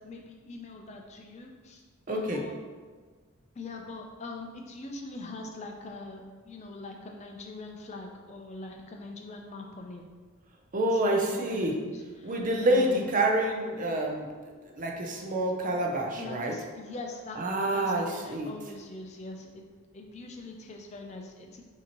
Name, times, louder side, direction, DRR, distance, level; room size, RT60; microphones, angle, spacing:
voice 1, 0.0-2.6 3.5-10.0 10.9-13.0 15.0-15.1 16.2-19.6 19.9-21.6, left 2 dB, 30° left, 2 dB, 0.4 m, -43 dB
voice 2, 2.1-2.4 10.7-11.7 12.2-14.3 14.6-16.5 17.4-18.5, right 1 dB, 35° right, 1 dB, 0.5 m, -27 dB
5.8 x 2.8 x 2.9 m, 1.5 s
head